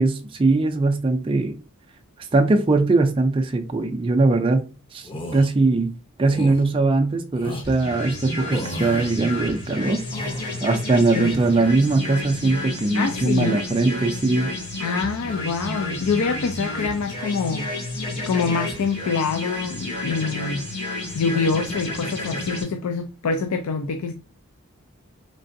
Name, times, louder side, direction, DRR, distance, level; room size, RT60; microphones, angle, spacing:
voice 1, 0.0-1.6 2.3-4.7 4.9-5.9 6.2-10.0 10.6-14.5, right 3 dB, 25° right, 0.3 m, -21 dB
sound 1, 5.0-5.5 6.2-6.6 7.3-7.7 8.5-9.1 9.8-10.6 11.1-11.8 12.2-12.6, equal, 25° left, 0.6 m, -35 dB
sound 2, 7.6-22.6, left 1 dB, 50° left, 2.1 m, -31 dB
voice 2, 12.9-13.6 14.8-17.7 18.3-20.7 21.1-24.1, left 5 dB, 85° left, 0.4 m, -25 dB
3.7 x 3.3 x 2.6 m
head